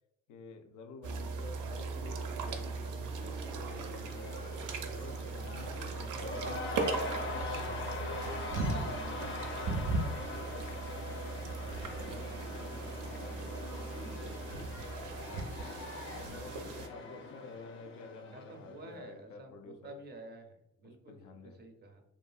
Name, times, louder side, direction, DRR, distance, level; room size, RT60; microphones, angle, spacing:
voice 1, 0.3-4.6 5.0-13.7 13.9-15.7 16.1-20.0 20.8-21.6, left 3 dB, 90° left, 0.5 m, -51 dB
sound 1, 1.0-16.9, right 4 dB, 90° right, 0.5 m, -38 dB
Cheering / Crowd, 2.0-18.9, left 2 dB, 40° left, 0.6 m, -42 dB
voice 2, 18.3-22.0, right 2 dB, 35° right, 0.5 m, -51 dB
2.7 x 2.5 x 2.3 m
cardioid pair, 90°, 30 cm